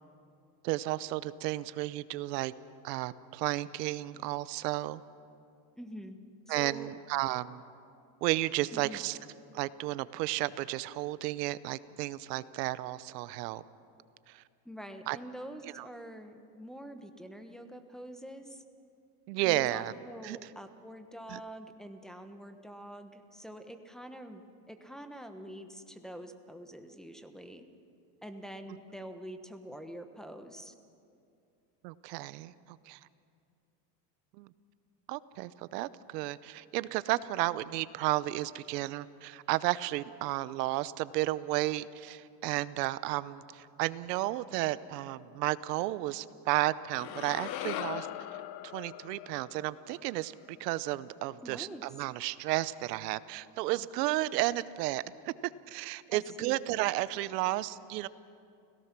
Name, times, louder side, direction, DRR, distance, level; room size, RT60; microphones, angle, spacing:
voice 1, 0.6-2.5 2.8-5.0 6.5-7.6 8.2-9.2 9.5-13.6 14.3-14.4 15.1-15.2 15.7-15.9 19.3-19.9 20.2-20.4 21.3-21.4 31.8-33.0 34.3-34.5 35.1-48.1 48.6-55.3 55.7-58.1, right 17 dB, 90° right, 17 dB, 0.9 m, -33 dB
voice 2, 5.8-6.2 6.4-6.9 8.7-9.0 14.6-18.6 19.4-27.6 28.2-30.7 51.4-51.8 56.1-56.6, equal, ahead, 7 dB, 1.1 m, -46 dB
sound 1, 46.9-51.2, left 12 dB, 50° left, 0.9 m, -41 dB
30.0 x 17.5 x 6.0 m, 2.5 s
supercardioid pair, 140°, 47 cm